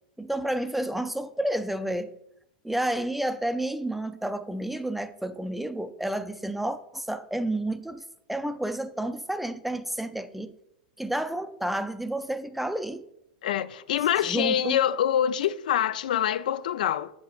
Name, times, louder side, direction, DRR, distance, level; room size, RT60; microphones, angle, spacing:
voice 1, 0.2-2.1 2.6-8.0 8.3-10.5 11.0-13.0 14.2-14.8, right 1 dB, 5° right, 0.4 m, -30 dB
voice 2, 13.4-17.1, left 10 dB, 75° left, 0.3 m, -25 dB
7.2 x 6.1 x 2.4 m
hypercardioid pair, 110°, 4 cm